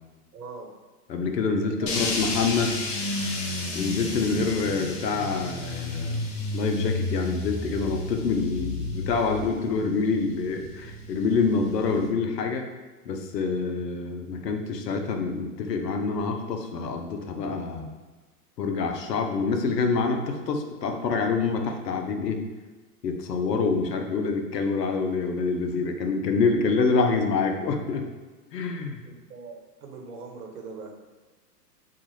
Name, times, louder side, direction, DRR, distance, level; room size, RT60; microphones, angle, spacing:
voice 1, 0.3-0.7 1.6-2.1 29.1-30.9, right 4 dB, 65° right, 2 dB, 0.9 m, -42 dB
voice 2, 1.1-3.0 3.7-12.6 13.1-17.9 18.6-22.4 23.0-28.1 28.5-29.0, left 4 dB, 80° left, 4 dB, 0.7 m, -26 dB
sound 1, 1.9-12.1, left 2 dB, 50° left, 0.8 m, -32 dB
3.6 x 2.4 x 3.1 m, 1.3 s
hypercardioid pair, 115°, 49 cm